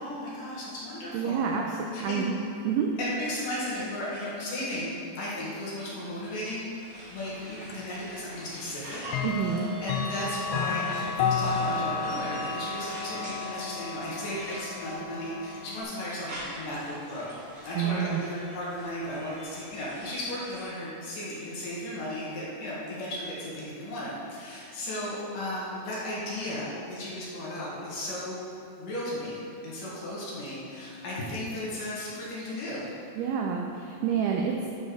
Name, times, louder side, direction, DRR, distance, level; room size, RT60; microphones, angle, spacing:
voice 1, 0.0-2.2 3.0-9.0 9.4-9.5 9.8-17.3 17.7-28.4 28.8-32.9, left 1 dB, 60° left, -7 dB, 2.7 m, -35 dB
voice 2, 1.1-2.3 2.6-2.9 9.2-9.7 17.7-18.2 33.2-34.7, right 7 dB, 90° right, 1 dB, 2.1 m, -28 dB
sound 1, 6.8-20.7, right 1 dB, 70° right, 1.1 m, -45 dB
Clock, 7.7-7.8 9.1-15.8, left 5 dB, 85° left, 2.8 m, -32 dB
10.0 x 4.3 x 4.8 m, 2.5 s
omnidirectional pair, 5.0 m